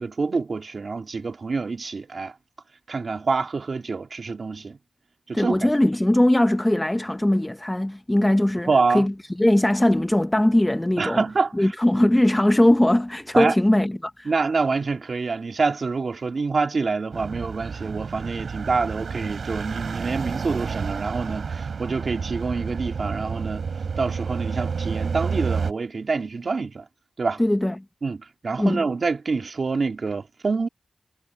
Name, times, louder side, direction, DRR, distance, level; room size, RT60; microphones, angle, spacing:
voice 1, 0.0-2.3 2.9-4.8 5.3-5.7 8.7-9.1 11.0-11.7 13.3-13.6 14.2-23.7 24.0-26.8 27.2-27.4 28.0-30.7, right 4 dB, 60° right, 2.8 m, -26 dB
voice 2, 5.3-8.7 8.9-11.2 11.5-14.3 27.4-27.8 28.6-28.9, left 1 dB, 15° left, 0.8 m, -20 dB
sound 1, 17.1-25.7, right 5 dB, 85° right, 3.2 m, -30 dB
wide cardioid pair, 85°, 0 cm